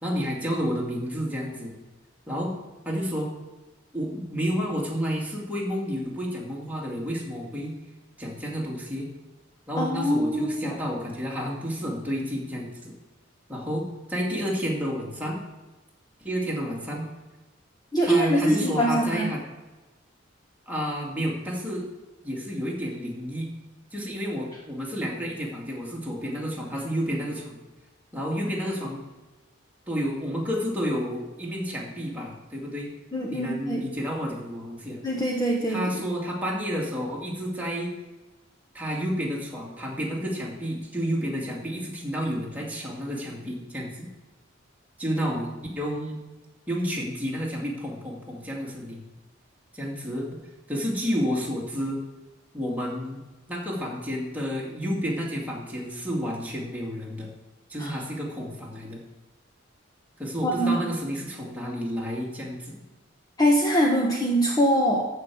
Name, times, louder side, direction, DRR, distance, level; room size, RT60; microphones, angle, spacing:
voice 1, 0.0-1.7 2.3-2.5 2.9-3.3 3.9-7.8 8.2-9.1 9.7-12.9 13.5-15.4 16.2-17.0 18.0-19.4 20.7-21.9 22.2-23.5 23.9-27.6 28.1-29.0 29.9-32.9 33.3-35.0 35.7-37.9 38.7-44.1 45.0-46.2 46.7-49.0 49.7-50.3 50.7-52.0 52.5-53.2 53.5-57.3 57.7-59.0 60.2-62.8, equal, 10° right, -3 dB, 2.4 m, -30 dB
voice 2, 9.8-10.8 17.9-19.3 33.1-33.9 35.0-35.8 57.8-57.9 60.4-60.9 63.4-65.1, equal, 20° left, -1 dB, 1.1 m, -23 dB
14.0 x 4.9 x 7.1 m, 1.1 s
head